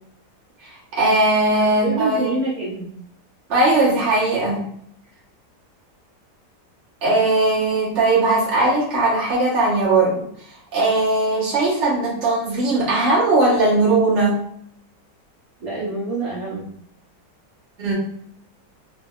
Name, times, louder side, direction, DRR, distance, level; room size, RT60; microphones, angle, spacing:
voice 1, 0.9-2.3 3.5-4.6 7.0-10.2 10.7-14.4 17.8-17.9, right 2 dB, 45° right, -7 dB, 1.4 m, -19 dB
voice 2, 1.6-2.9 15.6-16.7, right 2 dB, 60° right, -7 dB, 1.5 m, -26 dB
3.3 x 3.0 x 2.3 m, 0.69 s
omnidirectional pair, 1.8 m